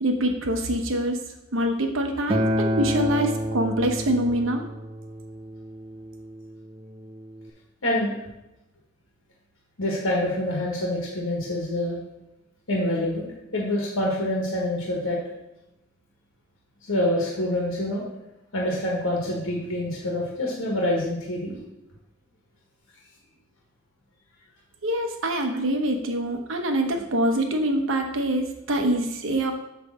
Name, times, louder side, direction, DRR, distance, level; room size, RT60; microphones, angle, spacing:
voice 1, 0.0-1.2 1.5-4.6 24.8-29.5, right 1 dB, 85° right, 4 dB, 1.0 m, -25 dB
Acoustic guitar, 2.3-7.5, equal, 25° right, 0.6 m, -29 dB
voice 2, 7.8-8.1 9.8-12.0 12.7-15.2 16.8-18.0 18.5-21.5, left 1 dB, 90° left, -2 dB, 1.5 m, -26 dB
8.4 x 3.3 x 6.2 m, 0.92 s
head